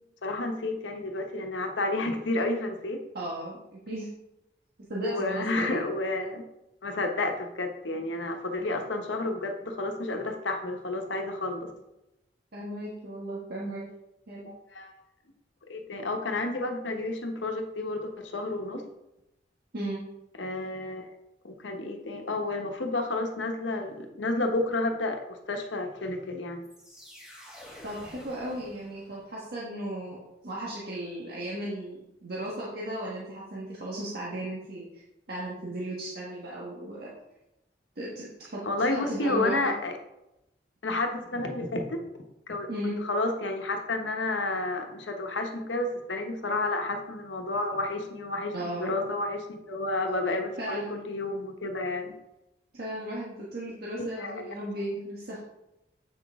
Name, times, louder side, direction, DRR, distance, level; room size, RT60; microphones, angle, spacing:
voice 1, 0.2-3.0 5.0-6.5 6.8-11.7 14.4-14.9 15.7-18.8 20.4-21.1 21.4-26.6 38.6-39.9 40.8-42.1 42.5-42.7 43.0-52.2 54.0-54.5, left 2 dB, 85° left, 4 dB, 1.1 m, -31 dB
voice 2, 3.1-4.1 4.9-5.7 12.5-13.8 14.3-14.5 19.7-20.0 27.8-35.0 35.3-37.1 37.9-38.6 38.9-39.7 42.7-43.0 48.5-48.9 50.6-50.9 52.7-55.4, right 1 dB, 60° right, -6 dB, 1.5 m, -35 dB
sound 1, 26.6-29.4, equal, 5° right, 2.3 m, -49 dB
8.2 x 6.2 x 3.6 m, 0.92 s
head